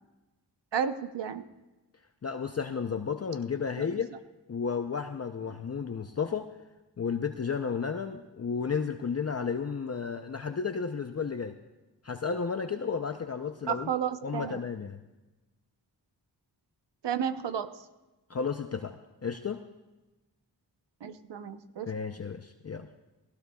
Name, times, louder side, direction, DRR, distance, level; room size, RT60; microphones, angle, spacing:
voice 1, 0.7-1.4 3.8-3.9 13.7-14.6 17.0-17.7 21.0-21.9, right 8 dB, 80° right, 10 dB, 0.8 m, -32 dB
voice 2, 2.2-4.1 4.5-6.6 7.0-11.6 12.0-13.9 14.2-15.0 18.3-19.6 21.9-22.9, left 6 dB, 35° left, 6 dB, 0.6 m, -33 dB
18.5 x 16.5 x 2.3 m, 1.1 s
cardioid pair, 60°, 42 cm